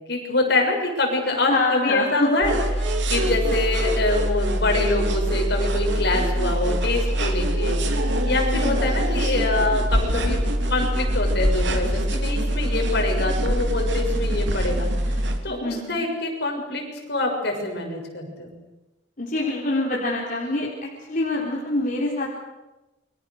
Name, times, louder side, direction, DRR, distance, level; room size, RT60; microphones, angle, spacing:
voice 1, 0.1-10.4 10.7-16.8 17.1-18.5, left 2 dB, 65° left, 2 dB, 6.6 m, -25 dB
voice 2, 1.5-2.3 8.5-8.9 15.5-16.1 19.2-22.4, left 2 dB, 45° left, -3 dB, 4.1 m, -25 dB
sound 1, 2.4-15.4, right 1 dB, 80° right, 3.3 m, -23 dB
29.5 x 24.0 x 6.7 m, 1.1 s
head